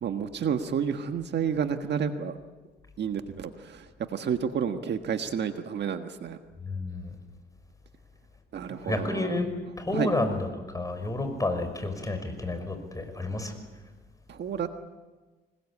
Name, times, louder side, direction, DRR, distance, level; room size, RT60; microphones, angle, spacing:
voice 1, 0.0-2.4 3.0-6.4 8.5-9.3 9.9-10.1 14.3-14.7, right 7 dB, 60° right, 7 dB, 1.5 m, -30 dB
voice 2, 6.6-7.1 8.7-10.5 10.7-13.6, left 2 dB, 15° left, 7 dB, 5.7 m, -30 dB
25.5 x 21.0 x 8.6 m, 1.3 s
cardioid pair, 90°, 20 cm